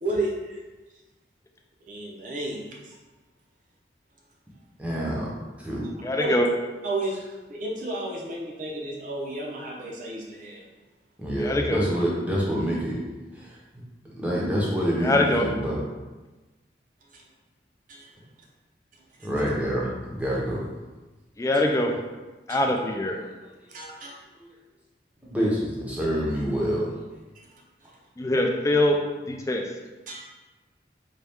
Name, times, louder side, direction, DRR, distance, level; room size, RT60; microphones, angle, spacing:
voice 1, 0.0-0.6 1.9-2.6 2.9-3.0 6.2-6.3 6.8-7.2 7.5-10.6 17.9-18.0 19.2-19.3 21.5-21.6 22.5-22.6 23.7-24.1 30.1-30.2, right 2 dB, 50° right, -2 dB, 0.7 m, -32 dB
voice 2, 4.8-5.3 5.6-5.9 11.2-13.0 13.3-13.6 14.0-15.8 19.2-20.6 25.2-26.9, equal, 10° right, -5 dB, 0.7 m, -27 dB
voice 3, 6.0-6.5 11.4-11.8 15.0-15.5 21.4-21.9 22.5-23.2 28.2-29.0 29.3-29.6, left 1 dB, 20° left, 2 dB, 0.3 m, -23 dB
4.1 x 2.3 x 3.4 m, 1.2 s
head